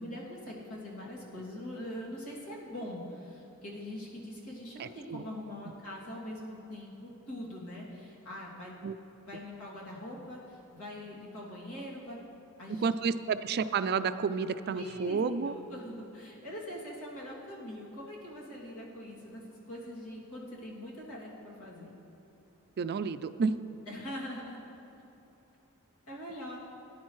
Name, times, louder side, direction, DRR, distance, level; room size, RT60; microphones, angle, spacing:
voice 1, 0.0-8.8 9.3-12.2 12.6-13.1 14.8-15.2 15.4-22.0 23.9-24.6 24.9-25.0 26.1-26.6, left 1 dB, 75° left, -4 dB, 2.5 m, -43 dB
voice 2, 4.8-5.2 8.8-9.0 12.7-15.5 22.8-23.6, right 5 dB, 50° right, 12 dB, 0.4 m, -31 dB
18.5 x 10.0 x 3.2 m, 2.9 s
head